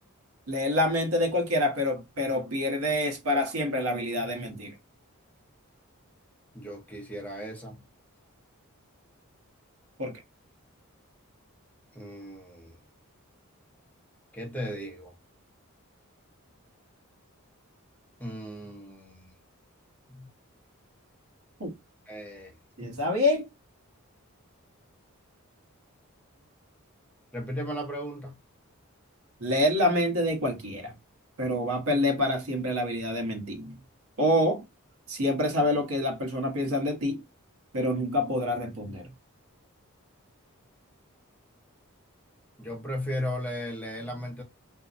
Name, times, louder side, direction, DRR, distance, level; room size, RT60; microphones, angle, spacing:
voice 1, 0.5-4.7 10.0-10.2 21.6-21.7 22.8-23.4 29.4-30.9 31.4-33.8 34.2-34.6 35.1-37.2 37.7-39.1, left 1 dB, 75° right, 1.0 m, -27 dB
voice 2, 6.5-7.8 11.9-12.8 14.3-15.1 18.2-19.3 20.1-20.3 22.1-22.5 22.8-22.9 27.3-28.3 42.6-44.4, equal, 5° left, 0.7 m, -36 dB
2.7 x 2.2 x 2.4 m
head